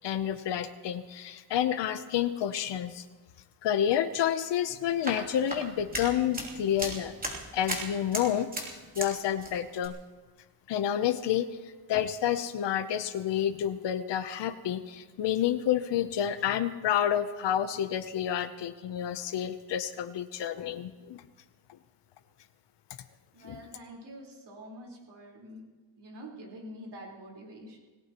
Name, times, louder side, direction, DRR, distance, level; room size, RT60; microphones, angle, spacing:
voice 1, 0.0-3.0 3.6-7.2 7.5-10.0 10.7-21.2 23.4-23.6, left 10 dB, 55° left, 9 dB, 0.8 m, -29 dB
sound 1, 4.8-9.1 9.4-9.9, right 1 dB, 15° right, 3.0 m, -37 dB
voice 2, 23.3-25.6 26.0-27.8, equal, 50° right, -2 dB, 4.3 m, -46 dB
28.0 x 17.5 x 3.0 m, 1.3 s
wide cardioid pair, 165°, 50 cm